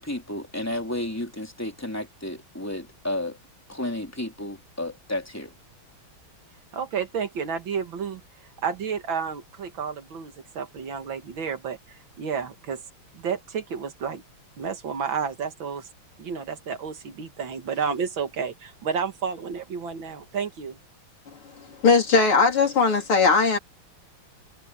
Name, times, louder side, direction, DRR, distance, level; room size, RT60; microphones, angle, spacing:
voice 1, 0.0-3.4 3.7-5.5, left 1 dB, 5° left, 3.5 m, -32 dB
voice 2, 6.7-8.2 8.6-12.8 13.1-14.2 14.6-15.9 16.2-20.8, right 6 dB, 65° right, 2.3 m, -31 dB
voice 3, 21.8-23.6, left 4 dB, 85° left, 4.6 m, -19 dB
omnidirectional pair, 2.3 m